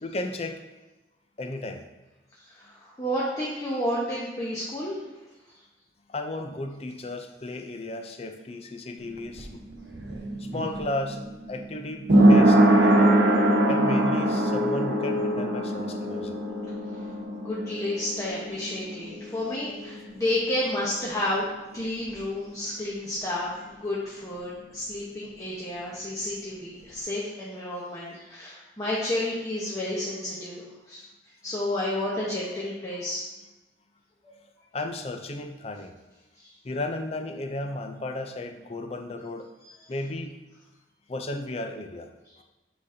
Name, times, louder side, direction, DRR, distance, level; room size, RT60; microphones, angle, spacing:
voice 1, 0.0-0.6 1.4-1.8 6.1-9.6 10.4-13.1 13.7-16.4 34.7-35.9 36.6-39.5 39.9-40.3 41.1-42.1 42.4-42.5, left 2 dB, 35° left, 6 dB, 0.5 m, -34 dB
voice 2, 2.5-5.0 17.4-21.5 21.7-31.0 31.4-33.2 34.2-34.4 36.4-36.5, left 1 dB, 20° left, -6 dB, 0.9 m, -31 dB
sound 1, 9.0-20.5 20.8-20.9, right 1 dB, 75° right, 1.0 m, -23 dB
7.9 x 5.0 x 2.7 m, 1.1 s
head